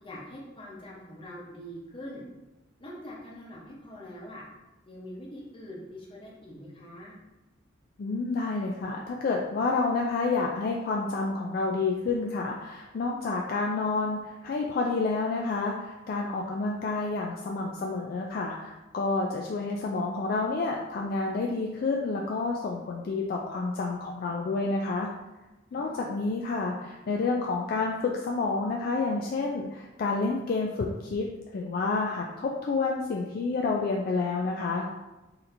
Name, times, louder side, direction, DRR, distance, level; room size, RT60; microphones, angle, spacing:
voice 1, 0.0-2.2 2.8-4.4 4.9-7.1 25.7-26.0, equal, 30° left, -4 dB, 0.8 m, -43 dB
voice 2, 8.0-25.1 25.7-31.3 31.5-34.9, left 3 dB, 50° left, 0 dB, 0.3 m, -29 dB
4.1 x 2.8 x 2.6 m, 1.1 s
head